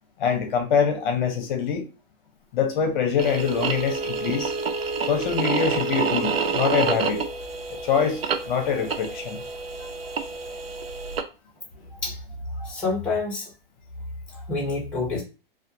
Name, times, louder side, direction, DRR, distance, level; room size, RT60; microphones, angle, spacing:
voice 1, 0.2-1.9 2.5-4.5 5.1-7.2 7.7-8.2 8.5-9.4, left 7 dB, 55° left, 0.7 m, -24 dB
Wind instrument woodwind instrument, 3.2-7.4, right 2 dB, 15° right, 0.3 m, -31 dB
sound 1, 3.2-11.2, right 5 dB, 85° right, 0.6 m, -29 dB
voice 2, 12.6-13.5 14.3-15.2, left 3 dB, 5° left, 0.9 m, -28 dB
2.4 x 2.3 x 2.7 m
hypercardioid pair, 140°, 29 cm